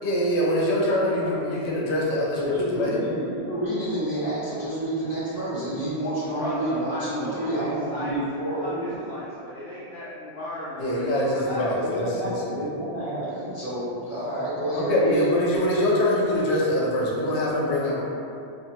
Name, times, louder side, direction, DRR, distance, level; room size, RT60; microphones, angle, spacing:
voice 1, 0.0-3.0 10.8-12.6 14.7-18.0, left 1 dB, 90° left, -4 dB, 1.0 m, -24 dB
voice 2, 1.0-1.4 6.3-8.1 8.6-11.7, left 1 dB, 60° left, -9 dB, 0.8 m, -35 dB
voice 3, 2.4-9.0 11.7-15.3, right 1 dB, 30° left, -11 dB, 1.3 m, -29 dB
2.9 x 2.5 x 4.3 m, 2.6 s
omnidirectional pair, 1.1 m